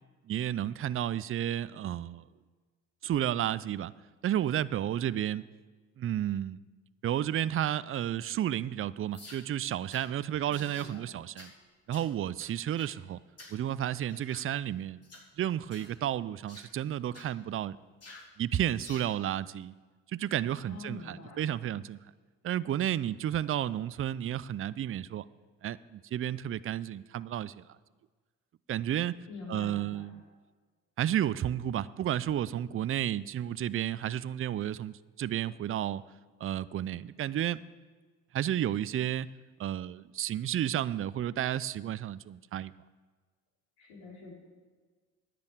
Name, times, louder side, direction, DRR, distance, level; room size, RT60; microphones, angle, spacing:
voice 1, 0.3-2.2 3.0-3.9 4.2-5.5 6.0-6.6 7.0-11.5 11.9-13.2 13.5-15.0 15.4-17.8 18.4-19.7 20.1-22.0 22.4-25.2 25.6-27.6 28.7-29.2 29.5-30.2 31.0-36.0 36.4-37.6 38.3-39.3 39.6-42.7, right 11 dB, 35° right, 18 dB, 0.5 m, -32 dB
sound 1, 9.1-9.4 9.9-10.1 10.5-10.9 11.4-11.5 11.9-12.1 12.4-12.9 13.4-13.6 14.1-14.5 15.0-15.3 15.7-15.9 16.5-16.7 17.1-17.3 18.0-18.3 18.8-19.1, left 2 dB, 40° left, 3.3 m, -50 dB
voice 2, 10.4-11.1 20.6-21.5 29.3-30.1 43.8-44.4, left 4 dB, 80° left, -2 dB, 3.5 m, -46 dB
10.5 x 7.0 x 8.3 m, 1.4 s
hypercardioid pair, 55°, 37 cm